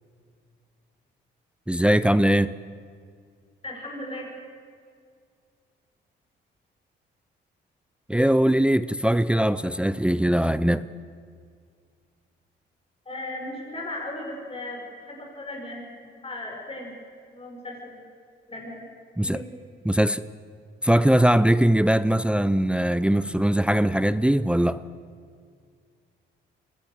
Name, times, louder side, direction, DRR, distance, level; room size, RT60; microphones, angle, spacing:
voice 1, 1.7-2.5 8.1-10.8 19.2-19.4 19.9-20.2 20.8-24.8, right 1 dB, 5° right, 0.6 m, -21 dB
voice 2, 3.6-4.3 13.0-16.9 17.3-18.0 18.5-18.8 19.2-19.4, left 1 dB, 30° left, 6.4 m, -36 dB
23.0 x 18.0 x 6.7 m
cardioid pair, 90°, 20 cm